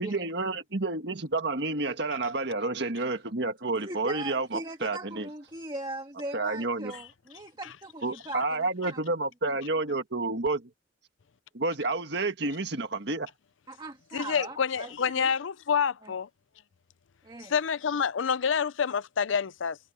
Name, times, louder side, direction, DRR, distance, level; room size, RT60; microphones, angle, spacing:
voice 1, 0.0-5.3 6.3-6.9 8.0-10.7 11.5-13.3, right 2 dB, 60° right, 1.8 m, -30 dB
voice 2, 3.8-9.0 13.7-15.3 16.0-16.1 17.2-17.5, right 2 dB, 25° right, 1.7 m, -40 dB
voice 3, 14.1-16.3 17.4-19.8, left 6 dB, 90° left, 0.6 m, -27 dB
head